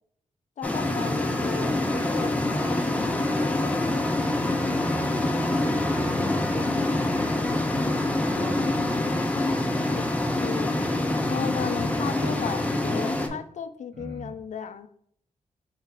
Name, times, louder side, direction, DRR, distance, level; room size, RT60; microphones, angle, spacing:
voice 1, 0.6-4.1 9.9-10.8 11.3-14.9, left 7 dB, 65° left, 11 dB, 0.4 m, -36 dB
sound 1, 0.6-13.3, left 1 dB, 10° left, 0.5 m, -25 dB
voice 2, 4.9-7.8 8.0-8.9 11.7-12.0 13.9-14.3, equal, 85° right, -2 dB, 1.8 m, -39 dB
4.5 x 2.9 x 3.7 m, 0.65 s
wide cardioid pair, 120°, 13 cm